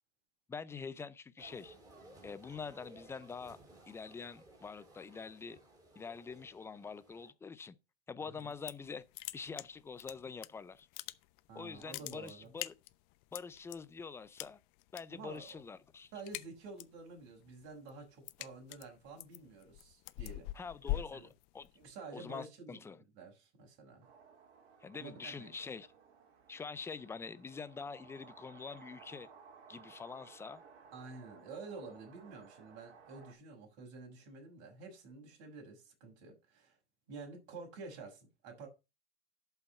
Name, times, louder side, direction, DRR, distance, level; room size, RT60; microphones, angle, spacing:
voice 1, 0.5-1.8 2.2-3.6 3.9-5.6 6.0-7.8 8.1-9.0 9.3-10.9 11.5-12.7 13.3-14.6 14.9-16.1 20.5-21.7 22.1-23.0 24.8-25.9 26.5-29.3 29.7-30.6, left 5 dB, 10° left, 0.4 m, -45 dB
sound 1, 1.4-7.3, right 1 dB, 10° right, 5.1 m, -58 dB
sound 2, 8.4-8.9 9.1-10.5 10.8-11.5 11.8-13.8 14.4-15.0 15.3-15.6 15.9-17.0 17.4-21.9, left 17 dB, 45° left, 0.8 m, -42 dB
voice 2, 11.5-12.5 15.1-15.6 16.1-20.5 20.9-21.3 21.7-22.8 23.1-24.1 25.0-25.5 30.9-36.8 37.1-38.7, right 4 dB, 45° right, 6.2 m, -50 dB
sound 3, 24.0-33.3, right 6 dB, 70° right, 3.3 m, -59 dB
11.0 x 5.8 x 5.4 m
hypercardioid pair, 125°, 34 cm